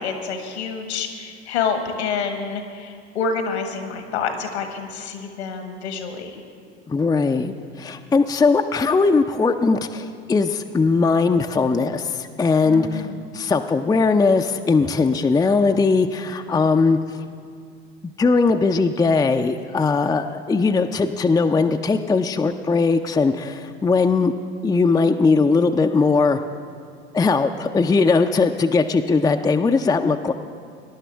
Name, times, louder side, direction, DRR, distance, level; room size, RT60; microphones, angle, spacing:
voice 1, 0.0-6.4 12.6-13.2, left 5 dB, 80° left, 6 dB, 1.5 m, -28 dB
voice 2, 6.9-13.1 13.3-17.0 18.2-24.3 24.6-26.4 27.1-30.3, left 4 dB, 10° left, 5 dB, 0.4 m, -19 dB
21.0 x 10.5 x 3.4 m, 2.3 s
hypercardioid pair, 70°, 33 cm